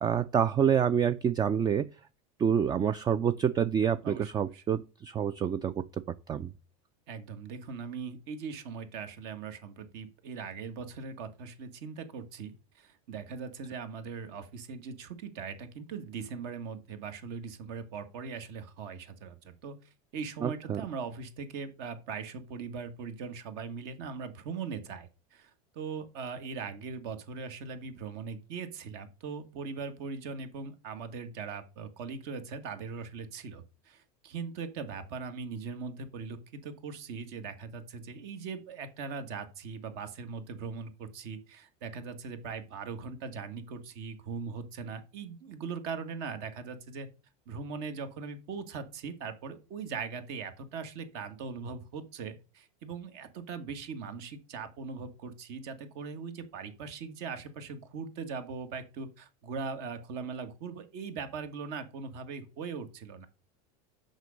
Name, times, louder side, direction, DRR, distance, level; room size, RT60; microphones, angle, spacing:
voice 1, 0.0-1.9 2.4-5.8 6.3-6.5 20.4-20.8, right 8 dB, 20° right, 0.4 m, -27 dB
voice 2, 4.0-4.6 7.1-19.8 20.1-47.1 47.5-63.3, right 5 dB, 60° right, 1.6 m, -40 dB
6.4 x 5.3 x 6.3 m
supercardioid pair, 110°, 19 cm